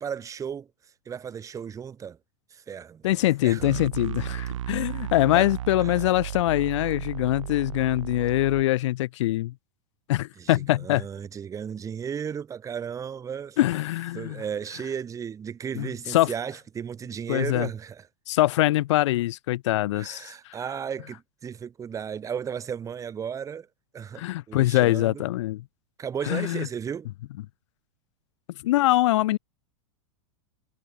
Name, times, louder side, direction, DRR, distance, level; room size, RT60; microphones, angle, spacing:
voice 1, 0.0-0.7 1.1-2.2 2.5-3.1 3.4-3.8 5.3-5.5 5.8-6.0 10.4-13.6 14.1-18.0 19.9-23.7 23.9-25.2 26.0-27.1, right 7 dB, 20° right, 1.8 m, -34 dB
voice 2, 3.0-9.5 10.1-11.1 13.6-14.4 15.8-16.3 17.3-17.7 18.3-20.6 24.2-25.6 26.2-26.7 28.6-29.4, left 16 dB, 75° left, 0.5 m, -23 dB
sound 1, 3.6-8.6, right 12 dB, 85° right, 0.9 m, -34 dB
hypercardioid pair, 125°, 15 cm